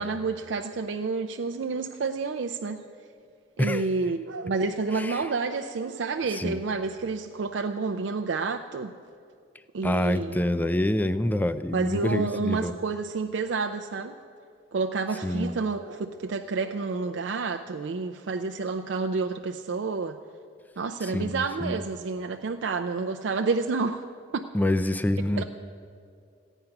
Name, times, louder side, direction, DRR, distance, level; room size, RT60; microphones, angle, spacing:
voice 1, 0.0-2.8 3.6-8.9 9.7-10.4 11.7-14.2 14.7-20.2 20.8-24.0 24.3-24.5 25.4-25.5, right 4 dB, 70° right, 6 dB, 0.4 m, -29 dB
sound 1, 2.7-2.8 4.2-4.8 5.4-6.1 7.0-7.1 7.5-7.6 7.9-8.4 9.1-9.3 12.9-13.0 13.3-13.4 14.8-14.9 15.1-17.2, right 3 dB, 85° right, 1.0 m, -45 dB
voice 2, 9.8-12.7 15.2-15.5 21.0-21.8 24.5-25.4, left 1 dB, 10° left, 12 dB, 0.4 m, -26 dB
15.5 x 9.0 x 5.8 m, 2.3 s
head